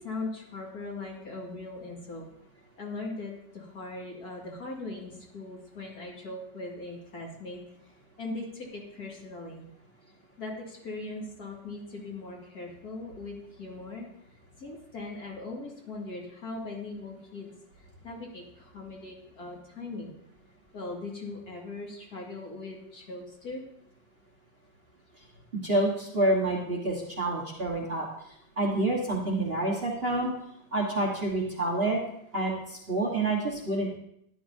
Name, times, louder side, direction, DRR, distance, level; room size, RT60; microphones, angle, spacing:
voice 1, 0.0-2.3 2.8-9.6 10.4-14.1 14.6-17.5 18.0-20.2 20.7-23.6, left 2 dB, 55° left, -2 dB, 2.5 m, -40 dB
voice 2, 25.6-28.0 28.6-30.3 30.7-32.0 32.3-32.5 32.9-33.9, right 2 dB, 35° right, -2 dB, 1.3 m, -27 dB
13.0 x 10.5 x 2.6 m, 0.74 s
omnidirectional pair, 2.1 m